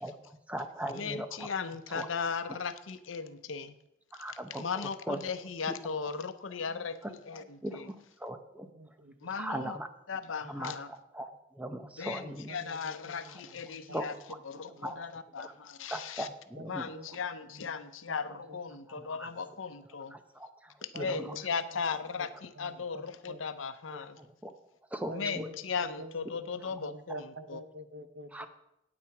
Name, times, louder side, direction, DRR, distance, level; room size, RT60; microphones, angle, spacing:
voice 1, 0.0-1.5 1.9-2.1 2.5-2.6 4.1-5.2 5.7-5.8 7.0-8.7 9.4-9.9 10.4-12.5 13.3-13.4 13.7-15.0 15.4-15.5 15.9-16.9 18.9-19.3 20.1-21.4 24.2-24.5 24.9-25.5 28.3-28.5, right 1 dB, 5° right, 8 dB, 0.7 m, -40 dB
voice 2, 0.9-3.7 4.6-7.9 9.2-9.8 10.1-10.9 12.0-14.1 14.5-16.3 16.7-20.2 20.8-24.2 25.1-27.6, left 5 dB, 90° left, 11 dB, 0.7 m, -37 dB
voice 3, 8.8-9.1 12.5-12.9 16.7-17.2 18.1-18.2 20.9-21.4 22.9-23.4 25.1-26.1 26.8-28.5, right 1 dB, 65° right, 9 dB, 0.9 m, -46 dB
8.9 x 8.6 x 4.7 m, 0.84 s
head